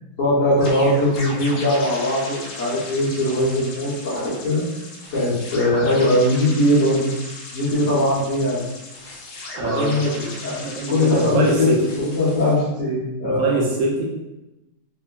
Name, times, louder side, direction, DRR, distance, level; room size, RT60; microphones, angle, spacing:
voice 1, 0.2-4.6 5.1-7.1 7.5-8.6 9.6-10.5 10.9-11.7 12.0-13.6, left 1 dB, 35° left, -11 dB, 0.7 m, -20 dB
sound 1, 0.6-12.5, left 2 dB, 70° left, 0.9 m, -36 dB
voice 2, 9.6-10.0 10.5-11.8 13.2-14.0, right 2 dB, 75° right, -2 dB, 0.8 m, -23 dB
3.2 x 2.2 x 2.2 m, 0.98 s
omnidirectional pair, 2.0 m